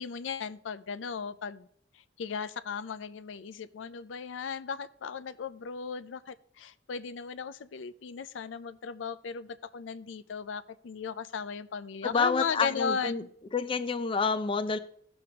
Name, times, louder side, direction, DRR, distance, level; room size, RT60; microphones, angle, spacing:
voice 1, 0.0-1.7 1.9-13.1, left 6 dB, 85° left, 14 dB, 0.4 m, -36 dB
voice 2, 12.0-13.2 13.5-14.8, left 4 dB, 30° left, 11 dB, 0.4 m, -28 dB
16.5 x 6.4 x 2.9 m, 0.66 s
head